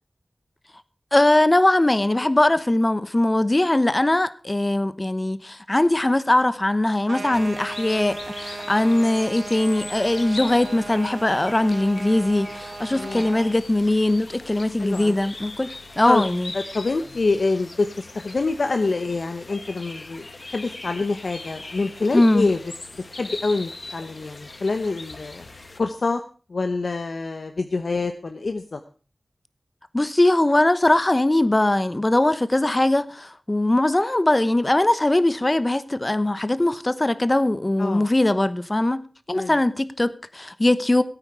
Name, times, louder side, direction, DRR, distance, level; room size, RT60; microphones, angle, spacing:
voice 1, 1.1-16.5 22.1-22.5 29.9-39.0 39.3-41.0, left 1 dB, 30° left, 1.0 m, -20 dB
sound 1, 7.0-13.6, right 3 dB, 85° right, 1.2 m, -37 dB
sound 2, 7.3-25.8, left 2 dB, 55° left, 1.7 m, -40 dB
voice 2, 12.9-13.3 14.8-15.2 16.1-16.2 16.5-17.9 18.1-22.6 23.1-25.4 25.8-26.2 26.5-28.8 37.8-38.0 39.3-39.6, left 3 dB, 80° left, 0.8 m, -26 dB
17.0 x 9.0 x 4.8 m
wide cardioid pair, 55°, 0 cm